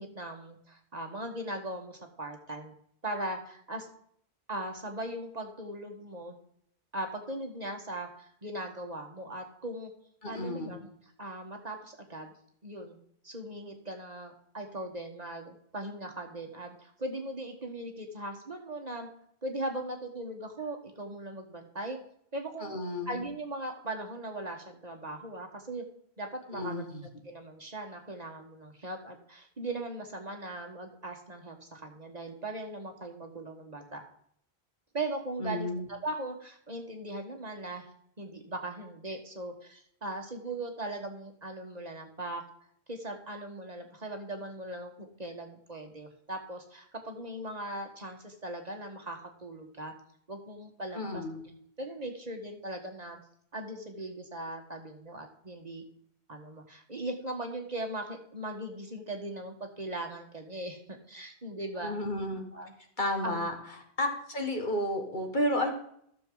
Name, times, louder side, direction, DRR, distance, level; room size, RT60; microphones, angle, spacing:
voice 1, 0.0-2.7 3.0-3.9 4.5-6.4 6.9-9.9 10.3-10.9 11.2-12.3 12.6-13.0 13.2-19.1 19.4-22.0 22.3-22.8 23.1-25.8 26.2-26.9 27.2-34.0 34.9-37.9 38.2-42.4 42.9-49.9 50.3-51.2 51.8-53.2 53.5-55.8 56.3-62.0 62.5-62.7 63.2-63.5, right 1 dB, 40° right, 3 dB, 1.5 m, -39 dB
voice 2, 10.2-10.8 22.6-23.3 26.5-27.1 35.4-35.8 50.9-51.5 61.8-62.4 63.0-63.5 64.0-65.7, left 1 dB, 50° left, 3 dB, 1.9 m, -32 dB
13.5 x 6.9 x 3.8 m, 0.67 s
omnidirectional pair, 1.1 m